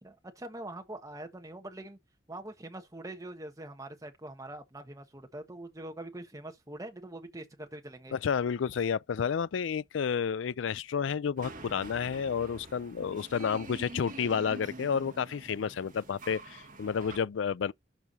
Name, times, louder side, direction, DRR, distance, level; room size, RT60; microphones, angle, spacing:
voice 1, 0.0-2.0 2.3-8.1, right 1 dB, 20° right, 1.3 m, -44 dB
voice 2, 8.1-17.7, left 6 dB, 90° left, 0.4 m, -31 dB
sound 1, 11.4-17.2, right 2 dB, 45° right, 2.2 m, -46 dB
12.0 x 4.7 x 2.8 m
head